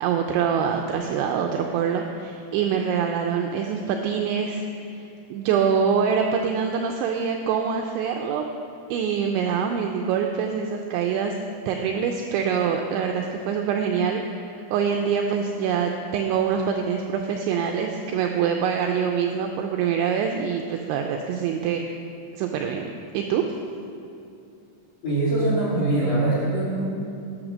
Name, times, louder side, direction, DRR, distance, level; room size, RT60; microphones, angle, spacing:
voice 1, 0.0-8.5 8.9-11.4 11.7-21.8 22.3-22.9 23.1-23.4, right 7 dB, 85° right, 3 dB, 2.7 m, -25 dB
voice 2, 25.0-26.9, right 2 dB, 40° left, -8 dB, 3.1 m, -23 dB
11.0 x 9.8 x 6.4 m, 2.6 s
omnidirectional pair, 5.9 m